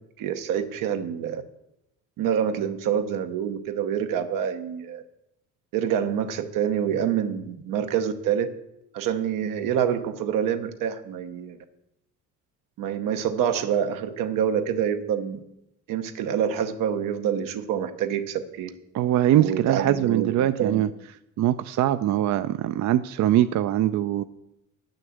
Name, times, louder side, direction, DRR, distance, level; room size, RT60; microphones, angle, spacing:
voice 1, 0.2-1.4 2.2-5.0 5.7-8.5 8.9-11.6 12.8-15.4 15.9-18.7 19.4-20.9, right 8 dB, 85° right, 8 dB, 1.0 m, -26 dB
voice 2, 18.9-20.9 21.4-24.2, right 12 dB, 60° right, 12 dB, 0.5 m, -22 dB
9.5 x 6.5 x 7.7 m, 0.86 s
cardioid pair, 95°, 32 cm